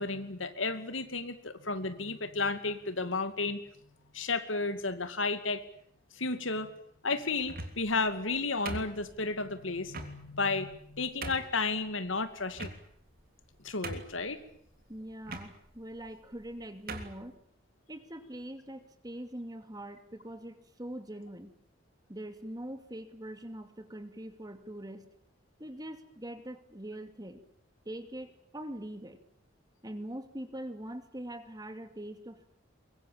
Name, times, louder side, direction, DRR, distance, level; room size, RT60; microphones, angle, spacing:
voice 1, 0.0-3.6 4.1-5.6 6.2-6.7 7.0-12.7 13.6-14.4, left 3 dB, 90° left, 10 dB, 2.5 m, -32 dB
sound 1, 7.4-7.9 8.7-9.3 9.9-10.1 10.7-10.8 11.2-11.6 12.5-13.1 13.5-13.6 13.8-14.3 15.2-15.5 16.3-16.5 16.9-17.2, right 2 dB, 50° right, 3.3 m, -40 dB
voice 2, 14.9-17.4 17.9-21.5 22.1-25.1 25.6-27.4 27.9-29.2 29.8-32.5, right 1 dB, 20° right, 8 dB, 2.6 m, -43 dB
23.0 x 23.0 x 8.9 m, 0.68 s
head